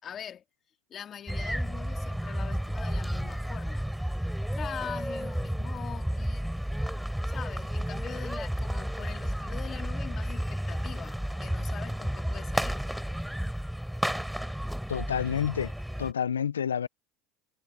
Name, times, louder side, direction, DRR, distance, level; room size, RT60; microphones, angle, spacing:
voice 1, 0.0-0.4 0.9-3.9 4.5-6.5 7.3-12.8, left 9 dB, 35° left, 2.2 m, -43 dB
sound 1, 1.3-16.1, equal, ahead, 3.3 m, -32 dB
voice 2, 14.9-15.7 16.0-16.9, left 8 dB, 85° left, 0.4 m, -29 dB
hypercardioid pair, 85°, 0 cm